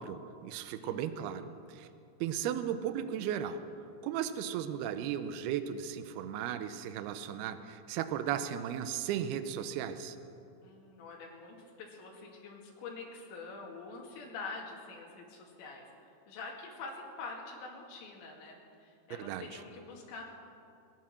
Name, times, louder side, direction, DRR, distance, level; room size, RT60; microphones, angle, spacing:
voice 1, 0.0-1.9 2.2-3.6 4.0-10.2 19.2-19.5, right 9 dB, 85° right, 11 dB, 2.2 m, -36 dB
voice 2, 0.8-1.2 10.6-20.2, left 4 dB, 70° left, -1 dB, 4.3 m, -46 dB
21.0 x 10.5 x 6.4 m, 2.5 s
omnidirectional pair, 5.4 m